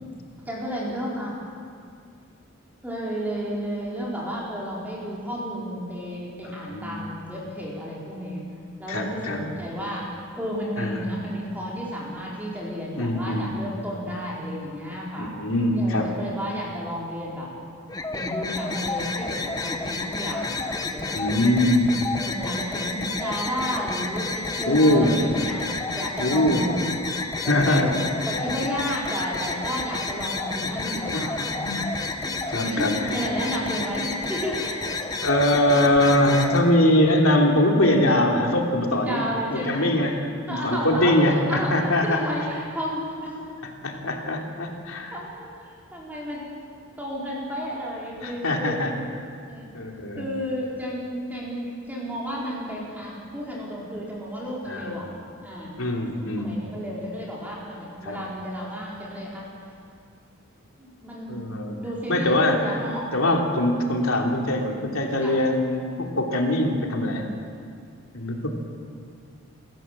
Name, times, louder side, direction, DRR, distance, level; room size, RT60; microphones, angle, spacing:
voice 1, 0.5-1.4 2.8-8.4 8.8-10.1 10.4-15.3 15.7-17.5 18.1-21.6 22.2-27.0 27.4-27.9 28.3-35.2 37.4-38.0 38.9-39.9 40.5-43.4 45.1-46.4 47.0-48.9 49.5-49.7 50.2-55.7 56.4-59.5 60.8-63.1 65.2-65.4, equal, 10° right, -5 dB, 4.6 m, -32 dB
voice 2, 6.7-7.0 8.9-9.4 10.8-11.0 13.0-13.5 15.2-16.1 21.1-21.9 24.6-25.2 26.2-26.6 27.5-27.9 30.9-31.2 31.6-31.8 32.5-32.9 35.2-39.2 39.5-42.2 43.8-45.1 48.2-48.9 49.7-50.3 54.7-54.9 55.8-56.5 58.0-58.2 61.3-61.8 62.1-62.8 63.1-67.3 68.1-68.5, left 1 dB, 90° left, 1 dB, 3.1 m, -22 dB
sound 1, 17.9-36.6, left 3 dB, 20° left, 1.0 m, -30 dB
28.5 x 14.5 x 7.5 m, 2.2 s
head